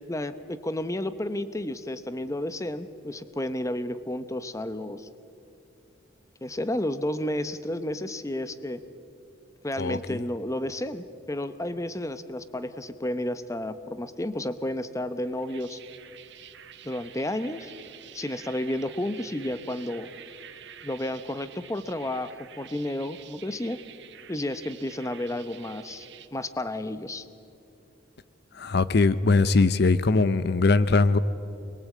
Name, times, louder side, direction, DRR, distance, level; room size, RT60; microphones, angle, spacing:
voice 1, 0.1-5.1 6.4-8.8 9.6-15.8 16.8-17.7 18.1-20.1 20.8-23.8 24.3-26.1 26.3-27.2, left 1 dB, 15° left, 12 dB, 0.8 m, -31 dB
voice 2, 9.8-10.2 28.5-31.2, left 3 dB, 55° left, 14 dB, 0.6 m, -21 dB
sound 1, 15.2-26.3, right 10 dB, 60° right, 1.3 m, -48 dB
26.0 x 22.0 x 8.5 m, 2.7 s
head